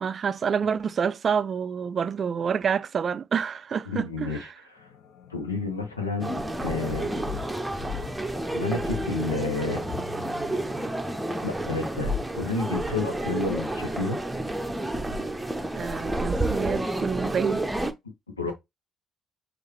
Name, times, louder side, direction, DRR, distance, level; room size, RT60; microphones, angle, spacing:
voice 1, 0.0-4.5 15.7-17.7, right 7 dB, 45° right, 0.4 m, -28 dB
voice 2, 3.9-4.4 4.7-4.9 5.3-7.5 8.5-9.9 11.4-14.2 18.4-18.5, left 3 dB, 85° left, 0.9 m, -30 dB
sound 1, 4.8-14.0, left 6 dB, 60° left, 0.7 m, -40 dB
sound 2, 6.2-17.9, right 1 dB, 10° right, 0.8 m, -30 dB
6.4 x 2.6 x 3.0 m
figure-of-eight pair, 45°, 0 cm